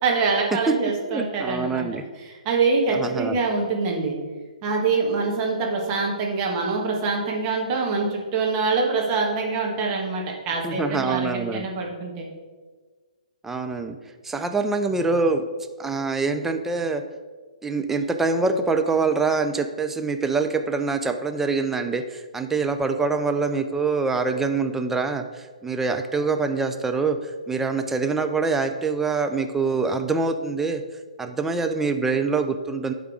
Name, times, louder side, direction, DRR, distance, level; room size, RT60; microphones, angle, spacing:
voice 1, 0.0-1.8 2.2-4.1 4.6-12.3, right 4 dB, 30° right, -1 dB, 1.5 m, -24 dB
voice 2, 1.0-2.0 2.9-3.4 10.6-11.7 13.4-14.0 14.2-15.4 15.8-17.0 17.6-30.8 31.2-32.9, right 4 dB, 5° right, 6 dB, 0.4 m, -25 dB
11.0 x 3.6 x 4.8 m, 1.4 s
figure-of-eight pair, 130°, 4 cm